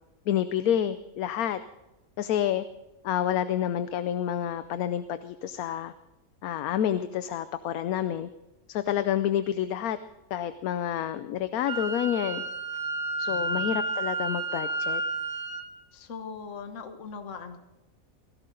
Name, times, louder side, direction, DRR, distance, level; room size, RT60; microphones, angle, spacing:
voice 1, 0.3-1.6 2.2-2.6 3.0-5.9 6.4-8.3 8.7-10.0 10.3-12.4 13.2-15.0, left 10 dB, 80° left, 12 dB, 1.1 m, -28 dB
Wind instrument woodwind instrument, 11.7-15.7, right 3 dB, 35° right, 2.2 m, -31 dB
voice 2, 13.3-13.8 15.9-17.6, left 5 dB, 60° left, 7 dB, 1.5 m, -41 dB
17.5 x 15.5 x 3.9 m, 0.99 s
omnidirectional pair, 1.5 m